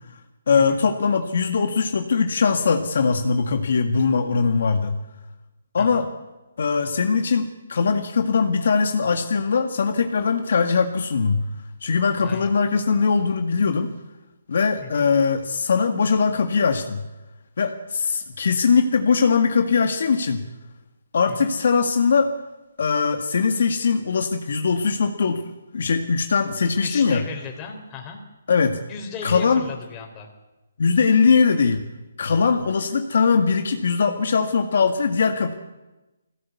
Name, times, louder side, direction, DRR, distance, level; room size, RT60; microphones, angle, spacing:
voice 1, 0.5-5.0 5.7-6.1 6.6-11.4 11.8-13.9 14.5-17.0 17.6-20.5 21.1-22.3 22.8-27.2 28.5-28.8 29.2-29.6 30.8-31.8 32.2-35.5, left 5 dB, 60° left, 6 dB, 1.8 m, -21 dB
voice 2, 5.8-6.1 12.2-12.5 14.8-15.1 21.3-21.5 26.8-28.2 28.9-30.3, left 5 dB, 15° left, 1 dB, 3.8 m, -36 dB
21.0 x 16.5 x 8.4 m, 1.1 s
hypercardioid pair, 160°, 0 cm